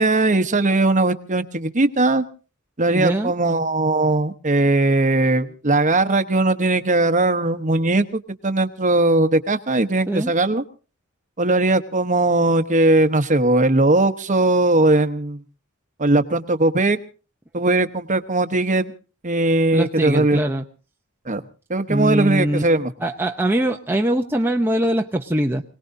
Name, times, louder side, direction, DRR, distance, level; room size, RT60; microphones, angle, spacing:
voice 1, 0.0-2.2 2.8-10.6 11.4-15.4 16.0-17.0 17.5-18.9 19.2-20.5 21.3-21.4 21.7-22.9, right 2 dB, 35° right, 10 dB, 1.0 m, -19 dB
voice 2, 2.9-3.3 10.1-10.3 19.7-20.6 21.9-22.6 23.0-25.6, right 1 dB, 10° right, 2 dB, 0.7 m, -22 dB
26.5 x 18.5 x 2.7 m, 0.35 s
head